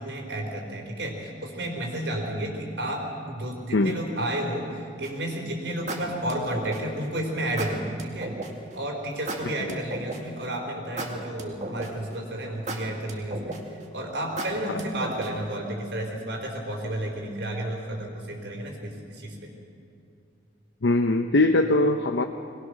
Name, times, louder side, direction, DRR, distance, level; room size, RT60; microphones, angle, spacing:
voice 1, 0.0-8.3 8.7-13.6 13.9-19.5, right 1 dB, 80° right, 0 dB, 4.3 m, -32 dB
sound 1, 5.0-5.3 5.9-7.0 7.6-8.5 9.3-10.4 11.0-12.1 12.7-13.8 14.4-15.5, right 2 dB, 40° right, 2.1 m, -34 dB
voice 2, 20.8-22.2, left 2 dB, 80° left, 5 dB, 0.8 m, -21 dB
22.5 x 20.0 x 6.5 m, 2.6 s
head